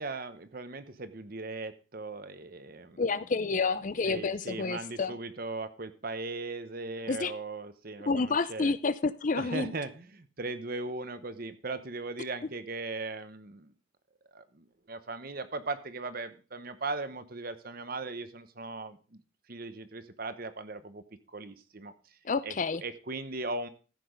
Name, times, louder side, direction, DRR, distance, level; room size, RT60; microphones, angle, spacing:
voice 1, 0.0-3.0 4.1-8.7 9.3-13.7 14.3-19.2 19.5-21.9 22.4-23.7, right 3 dB, 45° right, 1.0 m, -38 dB
voice 2, 3.0-5.1 7.1-7.3 8.1-9.7 22.2-22.8, left 4 dB, 40° left, 0.5 m, -29 dB
14.5 x 6.1 x 5.1 m
head